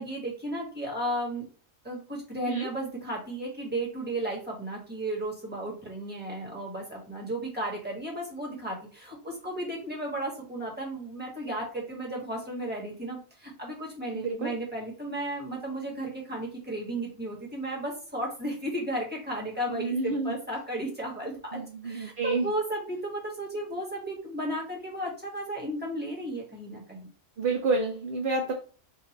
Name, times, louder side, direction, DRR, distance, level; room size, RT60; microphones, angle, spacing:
voice 1, 0.0-1.4 1.8-27.1, right 1 dB, 10° right, -3 dB, 1.4 m, -34 dB
voice 2, 14.1-14.5 19.7-20.4 21.5-22.5 27.4-28.5, right 3 dB, 55° right, 3 dB, 0.6 m, -29 dB
5.0 x 2.6 x 3.0 m, 0.38 s
omnidirectional pair, 1.4 m